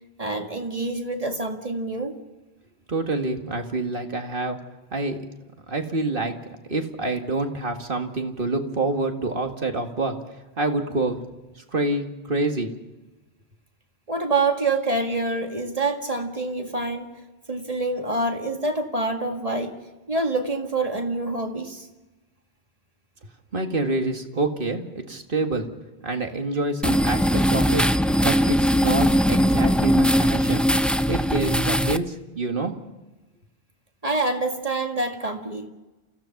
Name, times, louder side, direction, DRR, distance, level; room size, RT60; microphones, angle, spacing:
voice 1, 0.2-2.1 14.1-17.1 17.5-19.8 20.1-21.9 34.0-35.7, right 2 dB, 35° right, 3 dB, 2.1 m, -26 dB
voice 2, 2.9-4.6 4.9-5.2 5.7-6.3 6.7-10.2 10.6-11.2 11.7-12.7 23.5-25.7 26.0-27.9 28.2-30.7 31.1-32.7, right 2 dB, 55° right, 4 dB, 2.1 m, -27 dB
sound 1, 26.8-32.0, equal, ahead, 0.4 m, -20 dB
28.5 x 16.0 x 5.9 m, 1.1 s
omnidirectional pair, 1.1 m